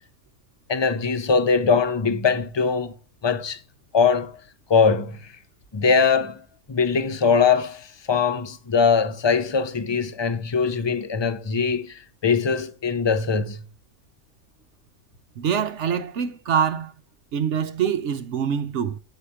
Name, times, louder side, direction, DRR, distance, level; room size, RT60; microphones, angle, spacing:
voice 1, 0.7-2.9 3.2-3.6 3.9-4.4 4.7-5.3 5.7-6.4 6.7-13.6, left 5 dB, 30° left, 0.5 m, -21 dB
voice 2, 15.4-16.9 17.3-19.0, right 8 dB, 60° right, 0.9 m, -24 dB
9.1 x 4.9 x 5.6 m
omnidirectional pair, 1.5 m